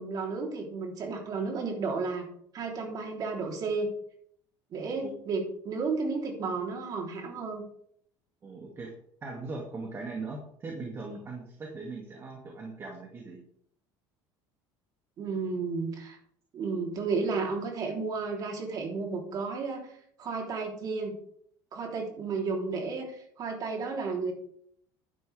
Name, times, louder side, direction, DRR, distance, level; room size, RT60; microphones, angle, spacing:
voice 1, 0.0-2.2 2.5-3.9 4.7-7.7 15.2-16.2 16.5-19.9 20.2-21.1 21.7-24.3, right 4 dB, 45° right, 1 dB, 3.6 m, -32 dB
voice 2, 8.4-13.4, right 3 dB, 25° right, 0 dB, 2.4 m, -40 dB
11.5 x 10.5 x 3.5 m, 0.66 s
cardioid pair, 130°, 9 cm